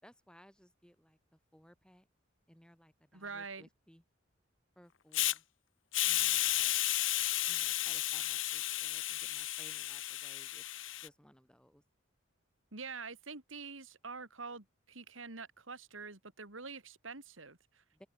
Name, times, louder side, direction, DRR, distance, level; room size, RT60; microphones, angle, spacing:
voice 1, 0.0-2.1 2.5-4.0 4.8-5.4 6.0-6.8 7.5-10.6 11.0-11.8 17.9-18.1, equal, 5° left, 4.7 m, -61 dB
voice 2, 3.1-3.7 12.7-18.0, right 4 dB, 90° right, 3.5 m, -46 dB
Hiss, 5.1-5.3 5.9-11.1, left 15 dB, 75° left, 1.3 m, -33 dB
head